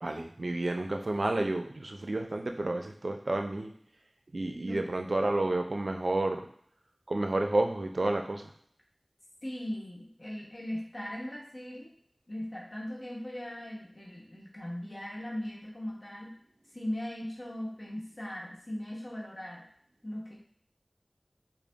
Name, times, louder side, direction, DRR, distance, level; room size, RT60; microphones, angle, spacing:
voice 1, 0.0-3.7 4.3-6.4 7.1-8.4, right 2 dB, 75° right, 4 dB, 0.4 m, -30 dB
voice 2, 9.4-11.9 12.3-16.3 16.7-19.7 20.0-20.3, left 1 dB, 50° left, -4 dB, 0.9 m, -39 dB
3.8 x 2.0 x 3.4 m, 0.62 s
wide cardioid pair, 40°, 0 cm